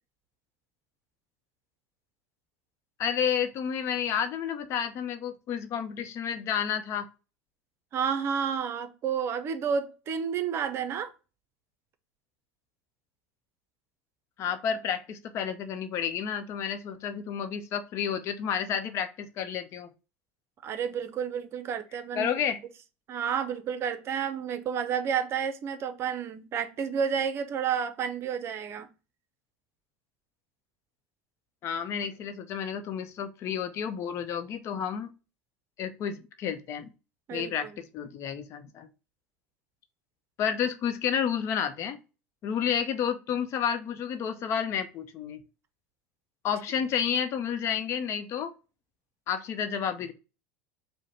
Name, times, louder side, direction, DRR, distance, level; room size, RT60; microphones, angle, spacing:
voice 1, 3.0-7.1 14.4-19.9 22.1-22.6 31.6-35.1 35.8-36.9 37.3-38.9 40.4-42.0 42.4-45.4 46.4-48.5 49.3-50.1, left 8 dB, 45° left, 0.7 m, -30 dB
voice 2, 7.9-11.1 20.6-22.3 23.1-28.9 37.3-37.8, right 7 dB, 40° right, 0.7 m, -30 dB
4.7 x 2.2 x 4.3 m
hypercardioid pair, 95°, 6 cm